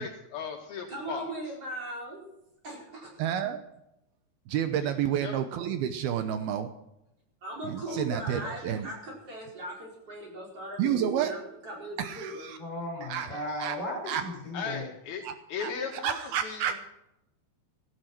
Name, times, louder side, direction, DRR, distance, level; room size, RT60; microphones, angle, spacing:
voice 1, 0.0-1.3 4.8-5.4 7.9-8.0 8.4-8.5 13.3-13.4 14.5-15.2 15.5-16.6, left 6 dB, 70° left, 2 dB, 3.6 m, -37 dB
voice 2, 0.9-2.3 2.6-3.3 7.4-12.5, right 1 dB, 35° right, -3 dB, 5.7 m, -39 dB
voice 3, 3.2-3.6 4.5-6.7 7.6-8.9 10.8-11.3 12.0-12.6 13.0-13.8 14.1-14.2 15.2-15.3 15.6-15.7 16.0-16.8, right 9 dB, 75° right, 9 dB, 2.7 m, -30 dB
voice 4, 12.6-14.9, left 1 dB, 40° left, 1 dB, 6.9 m, -36 dB
16.5 x 15.0 x 4.5 m, 0.85 s
omnidirectional pair, 4.7 m